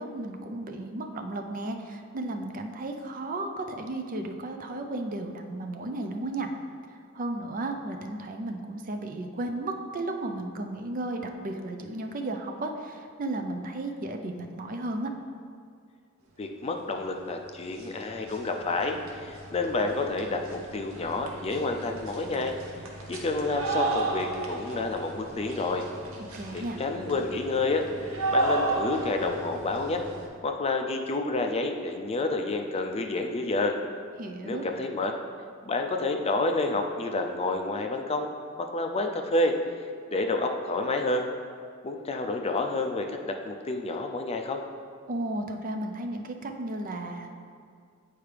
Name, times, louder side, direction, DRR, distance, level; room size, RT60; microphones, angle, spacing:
voice 1, 0.0-6.5 7.1-15.1 26.2-26.8 34.2-34.7 45.1-47.3, right 2 dB, 40° right, 4 dB, 0.5 m, -34 dB
voice 2, 16.4-22.5 23.1-25.8 26.5-27.8 28.3-30.0 30.4-33.7 34.4-35.1 35.6-38.3 38.6-39.6 40.1-41.3 41.8-44.6, left 2 dB, 30° left, 4 dB, 0.4 m, -29 dB
sound 1, 17.2-17.3 17.6-30.3, right 2 dB, 90° right, 0.9 m, -34 dB
8.8 x 4.6 x 3.3 m, 2.1 s
head